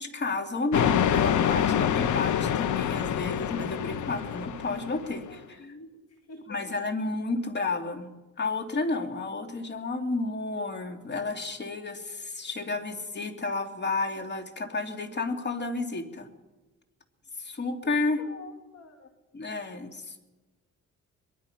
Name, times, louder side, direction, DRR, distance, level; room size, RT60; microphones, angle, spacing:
voice 1, 0.1-5.4 6.5-8.1 8.4-16.3 17.4-18.2 19.3-20.3, left 3 dB, 35° left, 6 dB, 2.6 m, -31 dB
sound 1, 0.7-5.2, left 9 dB, 75° left, 1.1 m, -26 dB
voice 2, 5.2-6.6 17.8-19.1, left 2 dB, 55° left, 5 dB, 2.6 m, -48 dB
23.0 x 22.5 x 5.8 m, 1.2 s
cardioid pair, 90°, 30 cm